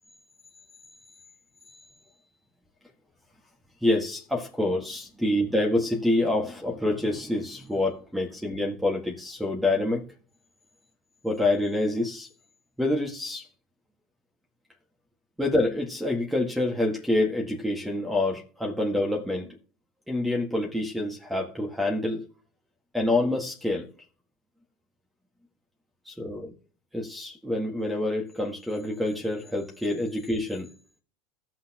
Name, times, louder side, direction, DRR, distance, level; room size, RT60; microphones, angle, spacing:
voice 1, 3.8-10.1 11.2-12.3 12.8-13.5 15.4-19.6 20.1-22.2 22.9-23.9 26.1-26.5 26.9-30.7, left 2 dB, 5° right, 1.8 m, -27 dB
16.5 x 6.0 x 3.0 m
supercardioid pair, 125°, 0 cm